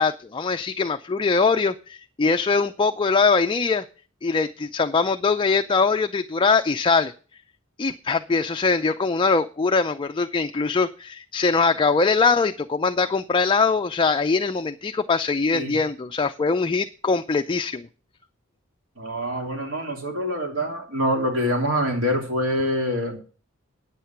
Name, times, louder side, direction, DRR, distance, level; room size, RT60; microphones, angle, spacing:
voice 1, 0.0-3.8 4.2-7.1 7.8-17.9, left 4 dB, 25° left, 7 dB, 0.4 m, -22 dB
voice 2, 19.0-23.2, equal, 75° right, 2 dB, 3.1 m, -25 dB
9.2 x 8.3 x 5.8 m, 0.37 s
head